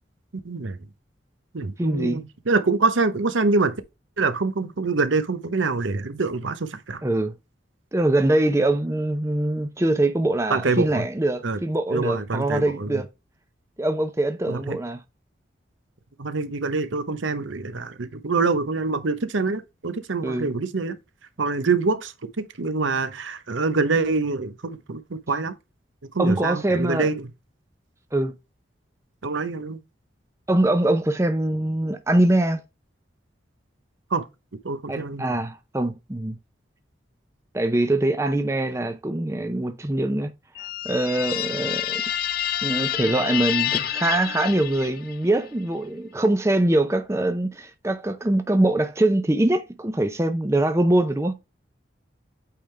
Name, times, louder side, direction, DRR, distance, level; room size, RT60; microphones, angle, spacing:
voice 1, 0.4-0.8 1.5-3.8 4.2-7.0 10.5-11.0 11.4-11.6 11.9-13.0 14.5-14.8 16.2-21.0 21.4-25.5 26.1-27.3 29.2-29.8 34.1-34.2 34.6-35.4, right 3 dB, 85° right, 0.8 m, -25 dB
voice 2, 1.8-2.2 7.0-7.3 7.9-13.1 13.8-15.0 20.2-20.5 26.2-27.1 28.1-28.3 30.5-32.6 34.9-36.4 37.5-40.3 40.6-42.0 42.6-51.3, right 1 dB, 15° right, 0.5 m, -23 dB
sound 1, 40.6-45.3, left 11 dB, 50° left, 0.4 m, -28 dB
8.6 x 3.6 x 3.3 m
head